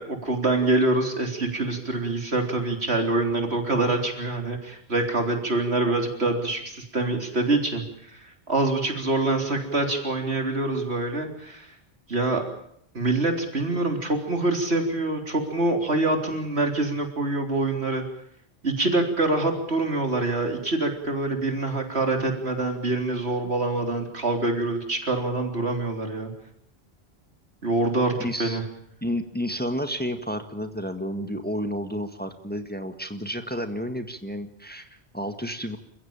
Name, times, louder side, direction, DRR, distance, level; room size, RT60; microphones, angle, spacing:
voice 1, 0.0-11.7 12.1-12.4 12.9-18.0 18.6-26.3 27.6-28.1 28.4-28.6, right 2 dB, 85° right, 4 dB, 4.0 m, -25 dB
voice 2, 28.2-28.6 29.0-35.8, equal, 10° left, 7 dB, 1.7 m, -31 dB
28.5 x 15.5 x 9.0 m, 0.71 s
omnidirectional pair, 1.1 m